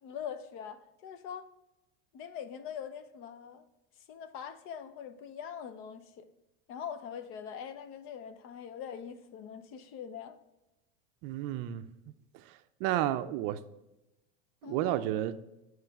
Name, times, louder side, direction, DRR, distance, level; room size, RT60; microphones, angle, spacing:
voice 1, 0.0-1.5 2.1-3.7 4.1-6.3 6.7-10.4 14.6-14.9, left 8 dB, 45° left, 0.7 m, -43 dB
voice 2, 11.2-11.8 12.8-13.6 14.6-15.4, right 13 dB, 55° right, 0.5 m, -31 dB
8.9 x 3.2 x 4.6 m
supercardioid pair, 135°, 29 cm